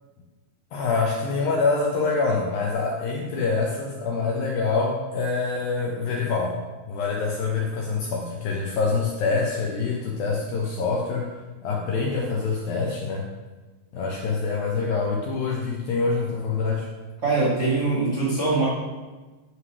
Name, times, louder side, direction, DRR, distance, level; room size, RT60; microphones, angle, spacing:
voice 1, 0.7-13.3 13.9-16.9, left 4 dB, 75° left, 0 dB, 2.2 m, -25 dB
voice 2, 17.2-18.7, right 3 dB, 45° right, -6 dB, 1.3 m, -22 dB
9.7 x 6.5 x 6.1 m, 1.3 s
omnidirectional pair, 5.2 m